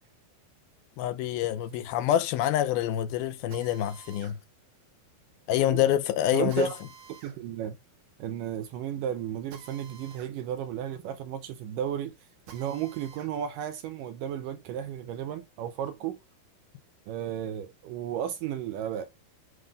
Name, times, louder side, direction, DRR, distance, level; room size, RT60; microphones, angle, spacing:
voice 1, 1.0-4.4 5.5-6.7, left 12 dB, 85° left, 2.6 m, -26 dB
Drill, 3.5-13.3 13.8-15.4, right 7 dB, 60° right, 3.3 m, -54 dB
voice 2, 6.3-6.8 7.2-7.8 8.2-12.1 12.5-16.2 17.1-19.1, right 9 dB, 80° right, 2.0 m, -33 dB
9.6 x 3.8 x 5.1 m
omnidirectional pair, 4.4 m